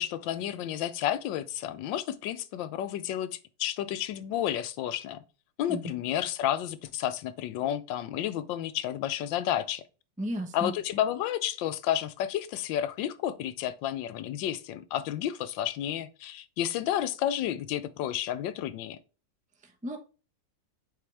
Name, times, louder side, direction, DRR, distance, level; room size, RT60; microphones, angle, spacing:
voice 1, 0.0-5.2 5.6-9.8 10.5-19.0, left 11 dB, 85° left, 1.3 m, -31 dB
voice 2, 10.2-10.7 19.6-20.0, equal, 10° right, 0.4 m, -34 dB
6.8 x 4.9 x 3.3 m
omnidirectional pair, 2.0 m